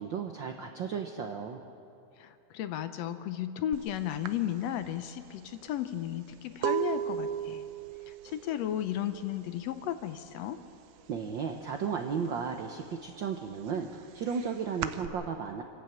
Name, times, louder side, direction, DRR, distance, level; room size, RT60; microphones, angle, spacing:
voice 1, 0.0-1.6 11.1-13.9 14.1-15.6, right 6 dB, 90° right, 5 dB, 1.0 m, -34 dB
voice 2, 2.2-7.6 8.1-10.6, left 11 dB, 75° left, 11 dB, 1.7 m, -34 dB
sound 1, 3.7-3.9 4.2-9.9 10.2-10.7 11.0-12.1 12.5-15.1, right 10 dB, 70° right, 1.7 m, -36 dB
26.0 x 12.0 x 8.8 m, 2.7 s
omnidirectional pair, 3.4 m